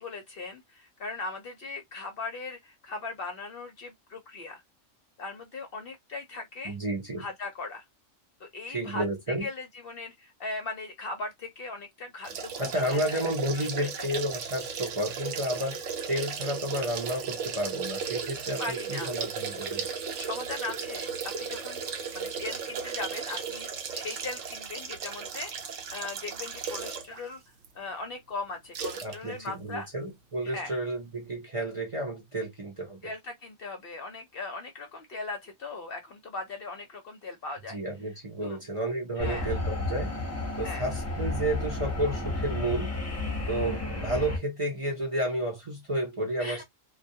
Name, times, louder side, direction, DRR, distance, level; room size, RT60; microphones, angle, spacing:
voice 1, 0.0-4.6 5.2-6.8 7.2-7.8 8.4-13.2 13.6-14.1 18.6-19.1 20.2-21.1 21.4-21.8 22.1-27.4 27.7-29.9 30.4-30.7 33.0-37.8 38.4-38.6 39.2-39.5 40.6-40.9 46.4-46.6, left 3 dB, 55° left, 0.7 m, -39 dB
voice 2, 6.6-7.2 8.7-9.5 12.6-15.8 16.1-19.9 29.0-33.1 37.7-40.1 40.6-42.9 43.5-46.6, right 1 dB, 35° right, 0.6 m, -31 dB
sound 1, 12.2-27.2 27.6-27.7 28.7-29.2 29.5-29.6, right 6 dB, 70° right, 0.8 m, -36 dB
sound 2, 39.2-44.4, left 2 dB, 20° left, 0.4 m, -32 dB
2.2 x 2.2 x 2.6 m
omnidirectional pair, 1.4 m